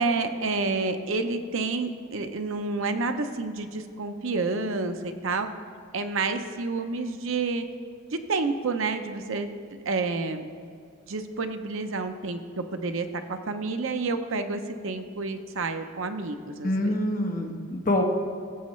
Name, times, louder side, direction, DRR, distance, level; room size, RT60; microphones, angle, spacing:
voice 1, 0.0-5.5 5.9-7.6 8.3-9.5 9.9-10.4 11.1-12.4 12.7-16.9, right 3 dB, 65° right, 7 dB, 0.7 m, -29 dB
voice 2, 16.6-18.0, left 1 dB, 40° left, 2 dB, 1.1 m, -26 dB
16.5 x 7.6 x 3.1 m, 2.4 s
head